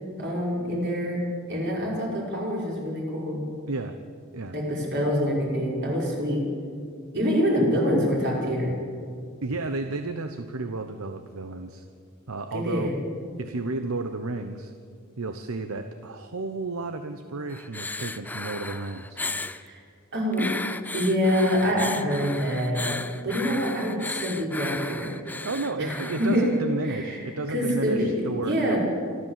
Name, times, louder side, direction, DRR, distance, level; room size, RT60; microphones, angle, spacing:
voice 1, 0.2-1.2 1.5-3.4 4.5-6.4 7.1-8.7 12.5-12.9 19.6-19.8 20.1-20.5 20.9-25.1 25.8-26.4 26.8-27.2 27.5-28.8, equal, 55° right, -3 dB, 5.7 m, -26 dB
voice 2, 3.7-4.0 4.3-4.6 9.4-11.8 12.3-12.9 13.4-14.7 15.2-19.2 25.4-28.8, right 3 dB, 75° right, 8 dB, 0.9 m, -32 dB
sound 1, 17.5-19.6 20.3-26.7 27.7-27.8, left 2 dB, 10° left, 0.5 m, -35 dB
26.5 x 13.0 x 7.6 m, 2.3 s
head